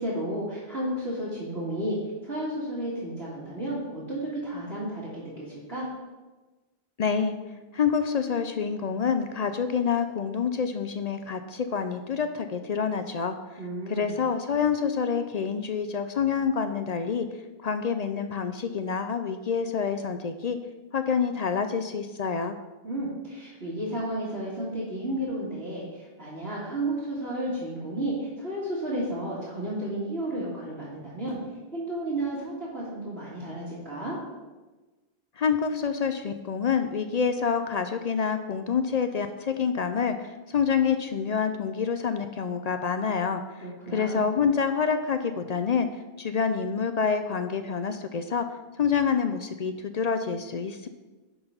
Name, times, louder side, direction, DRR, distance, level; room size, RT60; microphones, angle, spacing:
voice 1, 0.0-2.0 2.2-5.9 13.6-14.1 22.8-31.4 31.7-34.2 43.6-44.2, right 1 dB, 90° right, -9 dB, 2.2 m, -32 dB
voice 2, 7.0-7.4 7.7-13.3 13.9-17.3 17.6-20.6 20.9-22.6 35.4-43.7 43.9-45.9 46.2-48.5 48.8-50.9, left 6 dB, 55° left, 9 dB, 0.5 m, -27 dB
10.5 x 3.9 x 5.6 m, 1.2 s
omnidirectional pair, 1.0 m